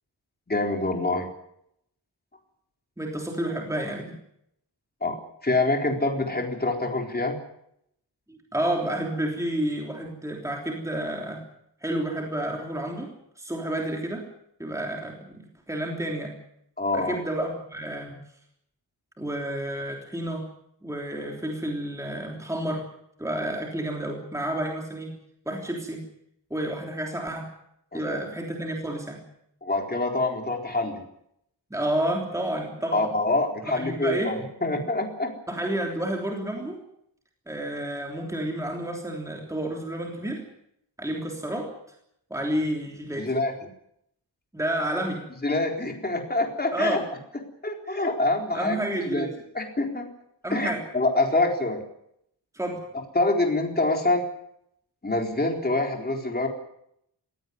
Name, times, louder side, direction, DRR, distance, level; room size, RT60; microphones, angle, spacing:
voice 1, 0.5-1.3 5.0-5.2 5.4-7.4 16.8-17.2 27.9-28.2 29.6-31.0 32.9-35.3 43.2-43.5 45.4-47.0 47.6-48.8 49.0-49.3 49.5-50.1 50.5-51.8 53.1-54.2 55.0-56.5, left 2 dB, 20° left, 2 dB, 4.1 m, -25 dB
voice 2, 3.0-4.1 8.3-11.4 11.8-14.2 14.6-16.3 16.9-18.2 19.2-20.5 20.8-22.8 23.2-25.1 25.4-26.0 26.5-27.5 27.9-29.2 31.7-33.1 33.6-34.3 35.5-36.8 37.5-40.4 41.0-41.7 42.3-43.3 44.5-45.2 46.7-47.0 48.5-49.3 50.4-50.8 52.5-52.8, right 1 dB, 5° right, 0 dB, 3.3 m, -30 dB
20.5 x 17.0 x 9.6 m, 0.76 s
wide cardioid pair, 160°, 43 cm